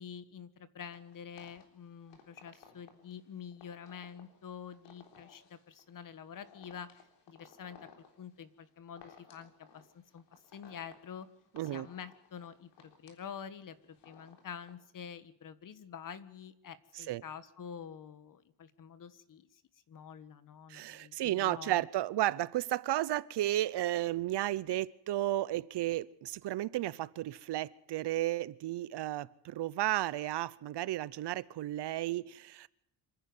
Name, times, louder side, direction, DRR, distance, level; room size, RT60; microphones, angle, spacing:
voice 1, 0.0-7.0 7.3-7.8 8.2-11.3 11.7-19.6 19.9-21.9, left 7 dB, 45° left, 13 dB, 1.5 m, -47 dB
sound 1, 0.9-14.7, left 6 dB, 75° left, 3.7 m, -59 dB
voice 2, 11.5-11.9 16.9-17.2 20.7-32.7, right 14 dB, 70° right, 19 dB, 0.8 m, -33 dB
26.5 x 10.5 x 9.5 m, 0.78 s
cardioid pair, 145°, 43 cm